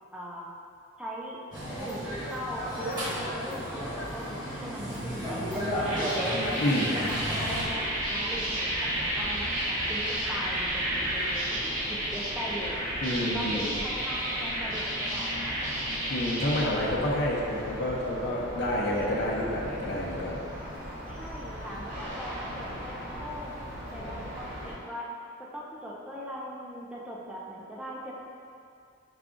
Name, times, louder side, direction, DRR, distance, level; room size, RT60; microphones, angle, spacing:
voice 1, 0.1-0.5 1.0-1.4 1.8-6.4 6.9-12.9 13.3-15.8 21.0-25.1 25.4-28.1, equal, 5° right, -5 dB, 0.4 m, -40 dB
sound 1, 1.5-7.6, equal, 20° right, 1.1 m, -33 dB
sound 2, 5.6-16.6, right 1 dB, 85° right, 1.0 m, -31 dB
voice 2, 6.6-6.9 13.0-13.7 16.1-20.4, left 1 dB, 55° left, -5 dB, 0.6 m, -29 dB
sound 3, 7.0-24.7, equal, 50° right, 0.8 m, -40 dB
4.8 x 2.3 x 3.7 m, 2.4 s
head